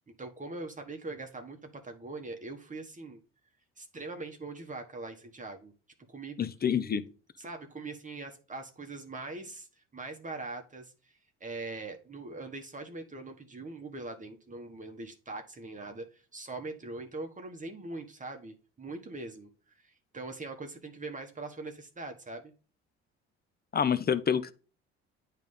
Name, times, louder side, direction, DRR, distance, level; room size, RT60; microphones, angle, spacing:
voice 1, 0.2-3.2 3.8-5.7 6.1-6.4 7.4-22.5, right 3 dB, 25° right, 1.4 m, -42 dB
voice 2, 6.4-7.0 23.7-24.5, left 7 dB, 30° left, 0.8 m, -27 dB
9.0 x 3.4 x 5.4 m
supercardioid pair, 75°, 29 cm